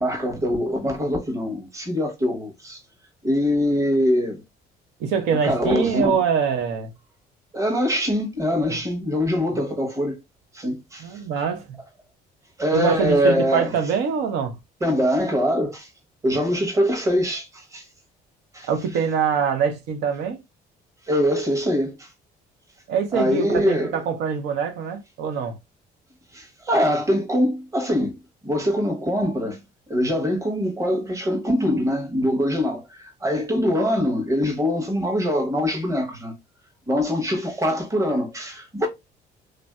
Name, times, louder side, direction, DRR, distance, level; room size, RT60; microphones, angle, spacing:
voice 1, 0.0-2.8 3.2-4.4 5.3-6.2 7.5-10.2 10.5-11.2 12.6-13.7 14.8-15.9 16.2-17.9 18.5-18.7 21.1-22.1 23.1-23.9 26.3-28.2 28.4-29.6 29.9-36.3 36.9-38.9, equal, 20° right, 1.0 m, -23 dB
voice 2, 5.0-6.9 8.7-8.8 11.0-11.8 12.7-14.6 18.6-20.4 22.9-25.6, right 6 dB, 85° right, 0.8 m, -24 dB
3.2 x 2.6 x 2.2 m
cardioid pair, 110°, 17 cm